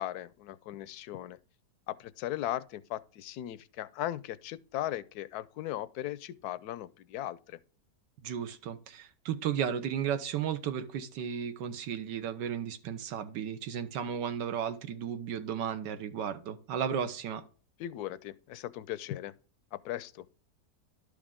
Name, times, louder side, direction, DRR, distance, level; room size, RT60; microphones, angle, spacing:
voice 1, 0.0-1.4 1.9-7.6 17.8-19.3 19.7-20.2, left 13 dB, 75° left, 1.0 m, -38 dB
voice 2, 8.2-17.4, right 8 dB, 85° right, 1.4 m, -34 dB
12.0 x 5.0 x 3.6 m
omnidirectional pair, 1.8 m